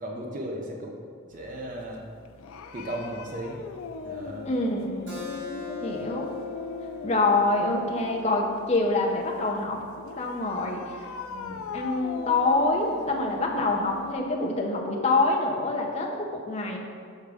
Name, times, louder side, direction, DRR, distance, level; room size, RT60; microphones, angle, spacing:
voice 1, 0.0-0.9 1.3-2.0 2.7-3.6 4.0-4.5 11.3-11.7, right 1 dB, 40° right, 0 dB, 0.6 m, -36 dB
sound 1, 1.3-14.2, left 4 dB, 85° left, 0.4 m, -40 dB
voice 2, 4.4-5.2 5.8-6.3 7.0-9.8 10.2-11.1 11.7-16.8, left 2 dB, 30° left, 0 dB, 0.6 m, -26 dB
Keyboard (musical), 5.1-10.3, left 5 dB, 55° right, 1.3 m, -41 dB
6.6 x 3.6 x 4.8 m, 2.1 s
head